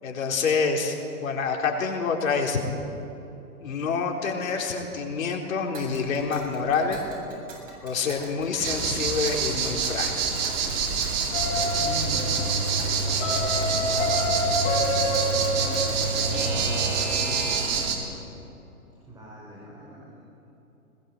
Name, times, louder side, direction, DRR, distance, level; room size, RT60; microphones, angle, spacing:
voice 1, 0.0-2.6 3.6-7.0 7.8-10.2, left 5 dB, 65° left, 2 dB, 4.2 m, -27 dB
Alarm / Clock, 5.7-17.9, right 2 dB, 60° right, 7.7 m, -40 dB
sound 1, 8.6-18.0, right 6 dB, 40° right, 3.9 m, -27 dB
sound 2, 11.3-16.9, equal, 40° left, 5.2 m, -27 dB
voice 2, 11.8-14.0 15.1-18.2 19.1-20.2, right 1 dB, 10° right, -5 dB, 5.0 m, -41 dB
21.0 x 20.5 x 7.9 m, 3.0 s
hypercardioid pair, 145°, 44 cm